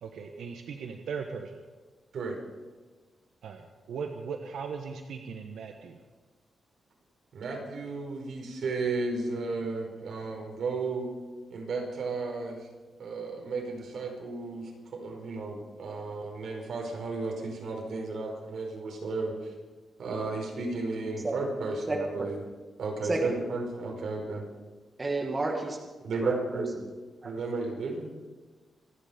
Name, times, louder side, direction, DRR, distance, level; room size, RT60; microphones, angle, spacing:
voice 1, 0.0-1.6 3.4-6.0, right 5 dB, 90° right, 4 dB, 1.3 m, -38 dB
voice 2, 7.3-11.1 11.5-12.7 13.0-19.5 20.0-22.4 22.8-24.4 26.0-26.7 27.2-28.1, right 3 dB, 65° right, 1 dB, 5.0 m, -33 dB
voice 3, 25.0-25.8 26.2-26.6 27.2-27.3, right 2 dB, 25° right, 1 dB, 2.0 m, -31 dB
26.5 x 10.5 x 5.2 m, 1.3 s
wide cardioid pair, 130°, 0 cm